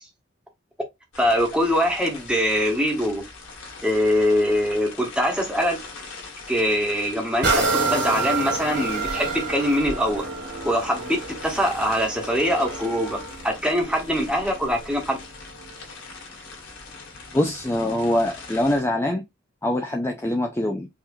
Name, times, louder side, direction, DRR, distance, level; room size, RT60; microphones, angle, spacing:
sound 1, 1.1-18.8, left 3 dB, 90° left, 1.8 m, -41 dB
voice 1, 1.2-3.2 3.8-5.8 6.5-10.2 10.6-13.2 13.4-15.2, equal, 5° right, 1.1 m, -23 dB
sound 2, 7.4-15.0 15.6-15.7, right 3 dB, 55° right, 1.5 m, -28 dB
voice 2, 17.3-19.2 19.6-20.9, left 1 dB, 15° left, 0.4 m, -23 dB
4.8 x 2.8 x 2.6 m
head